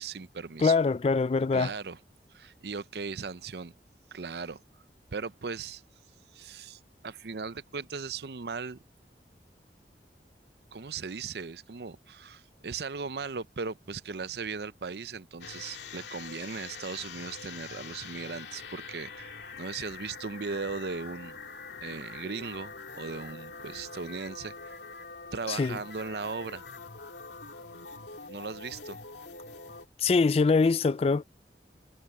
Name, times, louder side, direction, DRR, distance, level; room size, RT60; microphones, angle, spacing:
voice 1, 0.0-0.8 1.5-2.0 2.3-3.7 4.1-4.6 5.1-5.8 6.3-8.8 10.7-21.4 21.8-24.8 25.3-26.6 28.3-29.0, right 5 dB, 65° right, 0.6 m, -38 dB
voice 2, 0.6-1.7 25.5-25.8 30.0-31.2, left 4 dB, 35° left, 0.3 m, -23 dB
sound 1, 15.4-29.9, left 5 dB, 85° left, 2.2 m, -44 dB
head